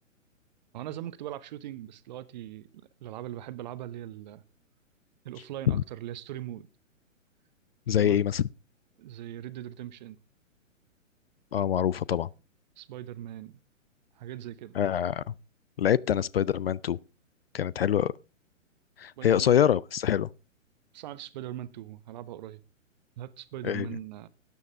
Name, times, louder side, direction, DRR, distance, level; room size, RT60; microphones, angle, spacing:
voice 1, 0.7-2.7 3.0-4.4 5.2-6.7 7.9-8.2 9.0-10.2 12.8-13.6 14.2-14.8 19.2-19.6 20.9-22.6 23.2-24.3, right 12 dB, 35° right, 0.9 m, -40 dB
voice 2, 7.9-8.4 11.5-12.3 14.8-15.3 15.8-17.0 17.5-18.1 19.0-20.3 23.6-23.9, left 9 dB, 50° left, 0.4 m, -25 dB
13.0 x 9.7 x 3.7 m
figure-of-eight pair, 120°, 40 cm